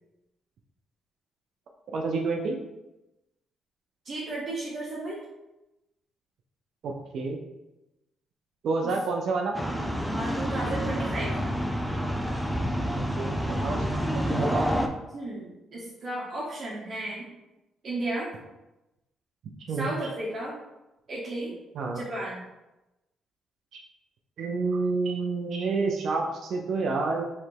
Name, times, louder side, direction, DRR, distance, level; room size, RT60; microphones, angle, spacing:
voice 1, 1.9-2.6 6.8-7.4 8.6-9.6 13.2-13.3 13.6-14.7 19.7-20.1 21.7-22.0 23.7-23.8 24.4-27.2, right 3 dB, 70° right, 1 dB, 0.5 m, -29 dB
voice 2, 4.0-5.2 8.8-8.9 10.1-11.3 15.1-17.3 17.8-18.3 19.7-20.5 21.1-21.5 21.9-22.4, right 2 dB, 45° right, -7 dB, 1.1 m, -33 dB
sound 1, 9.5-14.9, equal, ahead, 0.5 m, -28 dB
3.3 x 2.9 x 4.5 m, 0.98 s
cardioid pair, 90°, 0 cm